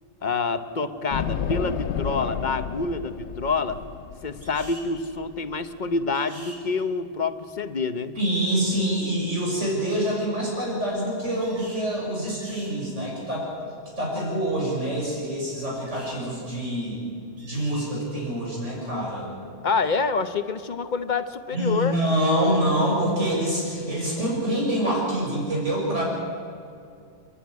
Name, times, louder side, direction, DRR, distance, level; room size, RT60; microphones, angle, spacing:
voice 1, 0.2-3.8 4.2-8.2 19.6-22.0, left 4 dB, 40° left, 10 dB, 1.0 m, -27 dB
sound 1, 1.1-6.0, left 8 dB, 70° left, 1.0 m, -31 dB
sound 2, 4.4-4.9 6.1-6.6 11.4-11.9 12.3-12.8 15.7-16.2 17.4-17.9, right 1 dB, 35° right, 5.7 m, -45 dB
voice 2, 8.2-13.5 14.0-17.0 17.4-19.3 21.5-26.0, right 1 dB, 80° right, -3 dB, 6.6 m, -26 dB
29.0 x 11.5 x 9.6 m, 2.3 s
omnidirectional pair, 1.2 m